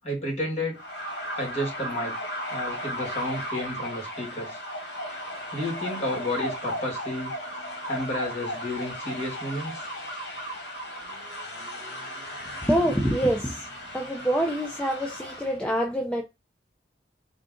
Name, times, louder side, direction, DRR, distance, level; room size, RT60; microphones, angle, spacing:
voice 1, 0.0-0.8 1.3-2.2 2.5-4.6 5.5-7.3 7.9-9.8, left 1 dB, 35° left, 2.3 m, -31 dB
sound 1, 0.7-15.6, equal, 70° left, 1.2 m, -36 dB
voice 2, 12.7-13.6 13.9-16.2, equal, 5° left, 0.6 m, -25 dB
3.9 x 2.5 x 3.7 m
head